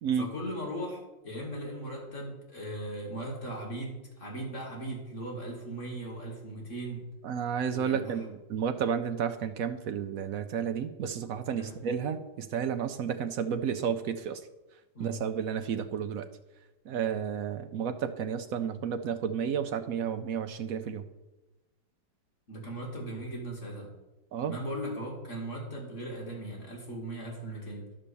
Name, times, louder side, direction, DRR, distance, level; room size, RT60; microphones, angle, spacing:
voice 1, 0.1-7.1 7.7-8.3 11.6-11.8 14.9-15.2 22.5-23.9 24.5-27.9, right 1 dB, 40° left, -1 dB, 2.2 m, -38 dB
voice 2, 7.2-14.4 15.0-16.2 16.9-21.0 24.3-24.5, right 7 dB, 75° right, 9 dB, 0.8 m, -32 dB
11.5 x 5.3 x 6.9 m, 1.1 s
omnidirectional pair, 2.0 m